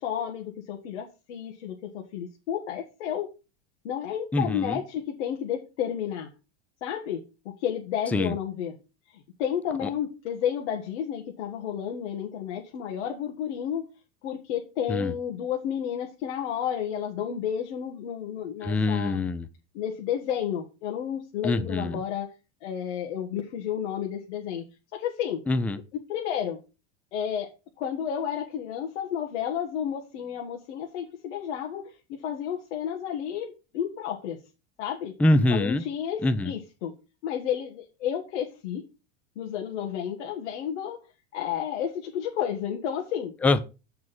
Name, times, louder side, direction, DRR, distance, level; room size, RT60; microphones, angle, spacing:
voice 1, 0.0-3.3 3.8-6.3 6.8-8.7 9.1-13.9 14.2-19.2 19.7-22.3 22.6-24.6 24.9-25.4 25.9-26.6 27.1-34.4 34.8-35.1 35.5-36.9 37.2-38.9 39.3-41.0 41.3-43.3, left 9 dB, 85° left, 1.6 m, -31 dB
voice 2, 4.3-4.8 8.1-8.4 9.8-9.9 14.9-15.1 18.6-19.5 21.4-22.0 25.5-25.8 35.2-35.8 36.2-36.5 43.4-43.6, left 2 dB, 5° left, 0.4 m, -24 dB
7.3 x 4.8 x 5.9 m
supercardioid pair, 145°, 34 cm